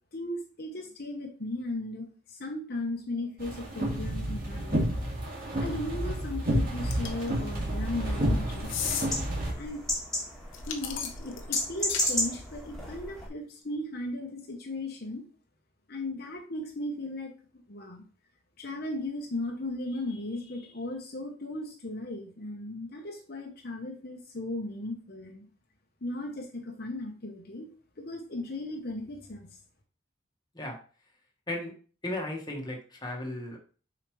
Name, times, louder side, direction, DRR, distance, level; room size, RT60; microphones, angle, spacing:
voice 1, 0.1-4.9 5.6-8.7 9.6-9.8 10.7-15.2 15.9-17.3 17.7-18.1 18.6-25.5 26.0-29.6, left 2 dB, 50° left, 1 dB, 1.0 m, -36 dB
sound 1, 3.4-9.5, right 1 dB, 45° right, 2.2 m, -30 dB
sound 2, 6.8-13.3, left 1 dB, ahead, 2.0 m, -35 dB
sound 3, 6.9-7.3 8.6-9.1 10.5-12.1, left 8 dB, 75° left, 1.0 m, -33 dB
voice 2, 32.0-33.6, left 1 dB, 20° left, 0 dB, 1.4 m, -35 dB
6.8 x 4.9 x 3.2 m, 0.39 s
head